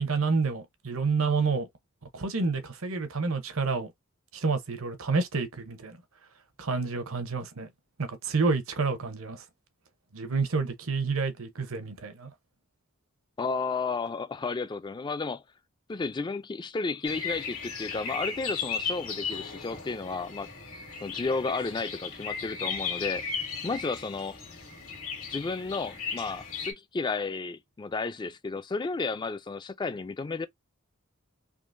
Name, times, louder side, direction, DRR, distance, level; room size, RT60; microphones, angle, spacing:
voice 1, 0.0-1.7 2.1-3.9 4.3-6.0 6.6-7.7 8.0-9.4 10.1-12.3, right 4 dB, 70° right, 0.8 m, -29 dB
voice 2, 13.4-15.4 15.9-20.5 21.0-23.2 23.6-24.4 25.3-30.5, left 4 dB, 20° left, 0.3 m, -32 dB
sound 1, 17.0-26.7, left 6 dB, 75° left, 1.6 m, -36 dB
3.7 x 2.8 x 2.5 m
head